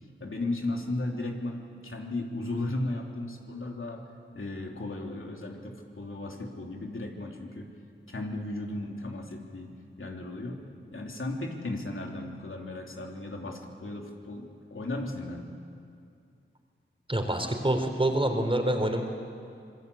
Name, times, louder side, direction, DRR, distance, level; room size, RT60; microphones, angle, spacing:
voice 1, 0.2-4.0 4.3-7.7 8.1-15.5, left 2 dB, 75° left, 1 dB, 3.1 m, -35 dB
voice 2, 17.1-19.0, right 1 dB, 25° right, 4 dB, 3.8 m, -26 dB
26.0 x 21.5 x 8.4 m, 2.4 s
wide cardioid pair, 50°, 21 cm